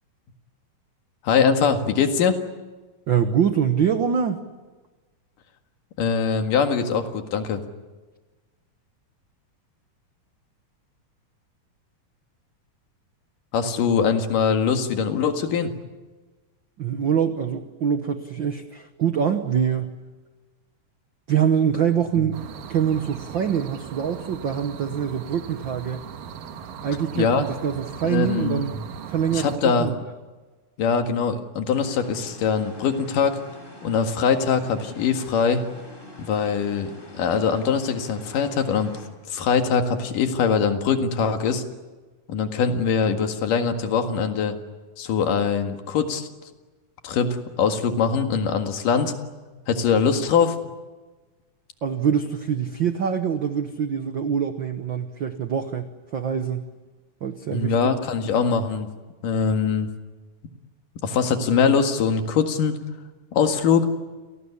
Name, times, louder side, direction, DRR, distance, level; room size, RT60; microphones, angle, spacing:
voice 1, 1.2-2.4 6.0-7.6 13.5-15.7 22.2-22.3 27.2-27.4 28.0-28.8 29.3-29.9 30.8-33.4 33.8-35.6 36.2-39.0 39.3-41.6 42.3-44.6 45.0-46.3 47.0-49.1 49.7-50.6 57.5-58.9 59.2-59.9 61.0-62.8 63.3-63.9, left 6 dB, 80° left, 6 dB, 3.4 m, -22 dB
voice 2, 3.1-4.4 16.8-20.0 21.3-22.4 22.7-26.1 26.8-28.8 29.1-30.0 51.8-56.7 57.2-57.7, right 8 dB, 70° right, 8 dB, 1.1 m, -24 dB
sound 1, 22.3-29.6, right 7 dB, 90° right, 3.2 m, -38 dB
sound 2, 31.7-39.1, left 1 dB, 15° left, 4.6 m, -45 dB
29.0 x 18.5 x 9.8 m, 1.3 s
omnidirectional pair, 3.8 m